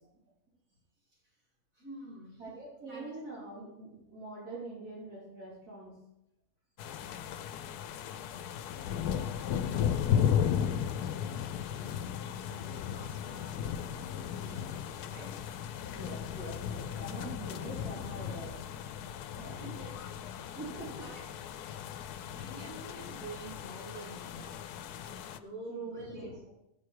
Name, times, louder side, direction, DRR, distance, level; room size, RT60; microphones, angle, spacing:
voice 1, 1.0-1.4 1.7-2.4 2.9-3.5 9.8-12.0 12.5-15.4 19.6-20.1 21.0-21.3 22.3-24.6 25.0-26.5, right 1 dB, 60° right, -8 dB, 4.9 m, -49 dB
voice 2, 2.4-6.0 15.9-18.6 19.3-19.8 20.6-21.0 25.7-26.5, right 2 dB, 85° right, -9 dB, 4.1 m, -44 dB
sound 1, 6.8-25.4, left 9 dB, 90° left, 1.2 m, -35 dB
16.0 x 5.9 x 4.7 m, 0.86 s
omnidirectional pair, 1.6 m